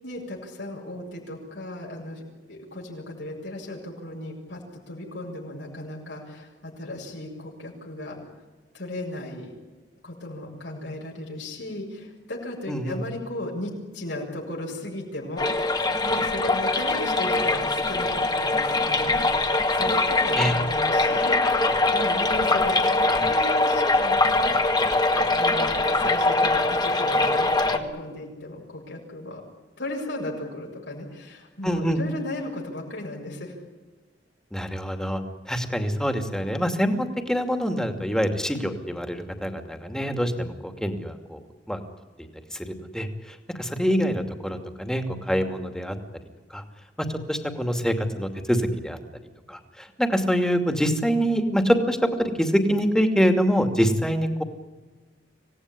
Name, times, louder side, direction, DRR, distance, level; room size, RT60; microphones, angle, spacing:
voice 1, 0.0-8.2 8.7-9.5 10.0-23.0 23.2-24.5 25.3-29.4 29.8-33.5, left 1 dB, 80° left, -2 dB, 7.2 m, -36 dB
voice 2, 12.7-13.0 20.3-20.5 31.6-32.0 34.5-35.2 35.5-41.4 41.7-41.8 42.5-46.0 46.5-46.6 47.0-49.0 49.5-54.4, equal, 5° left, 5 dB, 2.5 m, -25 dB
sound 1, 15.4-27.8, left 2 dB, 25° left, 1.9 m, -22 dB
26.5 x 18.0 x 9.9 m, 1.3 s
head